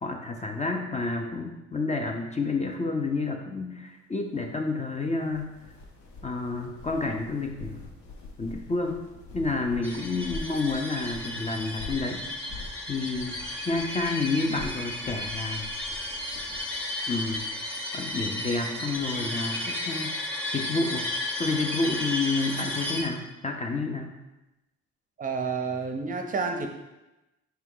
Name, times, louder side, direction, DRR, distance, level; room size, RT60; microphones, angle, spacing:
voice 1, 0.0-5.6 6.2-7.8 8.4-9.0 9.3-12.2 12.9-15.7 17.1-17.4 17.9-20.2 20.5-21.1 21.4-24.1, left 3 dB, 25° left, 3 dB, 0.5 m, -29 dB
sound 1, 5.2-19.3, left 2 dB, 70° left, 0.8 m, -46 dB
sound 2, 9.8-23.0, left 1 dB, 5° left, 0.9 m, -33 dB
voice 2, 25.2-26.7, right 4 dB, 30° right, 4 dB, 0.6 m, -29 dB
4.5 x 2.8 x 3.7 m, 1.0 s
cardioid pair, 90°, 30 cm